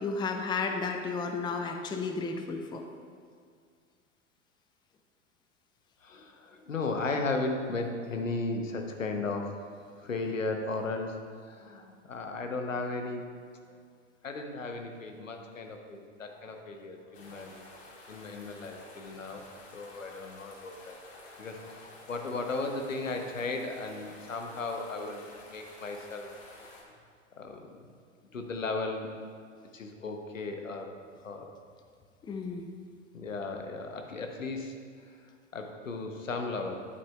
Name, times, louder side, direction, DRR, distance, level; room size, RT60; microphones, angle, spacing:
voice 1, 0.0-2.8 32.2-32.6, left 4 dB, 10° left, 5 dB, 0.5 m, -33 dB
voice 2, 6.0-9.5 10.0-11.2 11.4-13.2 14.2-17.6 18.1-19.4 19.7-20.9 21.4-26.3 27.4-27.8 28.3-29.1 29.7-30.9 31.2-31.5 33.1-34.7 35.5-36.9, left 3 dB, 90° left, 4 dB, 0.9 m, -35 dB
sound 1, 17.1-26.8, left 2 dB, 35° left, 1.9 m, -51 dB
10.0 x 8.4 x 2.3 m, 2.1 s
figure-of-eight pair, 90°, 38 cm